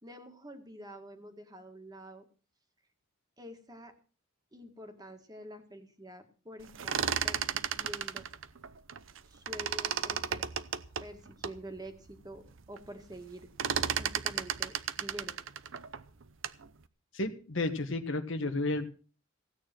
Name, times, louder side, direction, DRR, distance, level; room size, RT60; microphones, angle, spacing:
voice 1, 0.0-2.2 3.4-3.9 4.5-8.3 9.2-10.5 11.0-13.5 14.0-15.4, right 1 dB, 20° right, 5 dB, 2.0 m, -47 dB
sound 1, 6.6-9.2 9.5-11.6 12.1-12.2 12.5-12.9 13.1-16.7, right 8 dB, 65° right, 0.8 m, -34 dB
voice 2, 17.1-18.9, left 2 dB, 65° left, 9 dB, 1.4 m, -32 dB
16.5 x 9.2 x 6.1 m, 0.38 s
head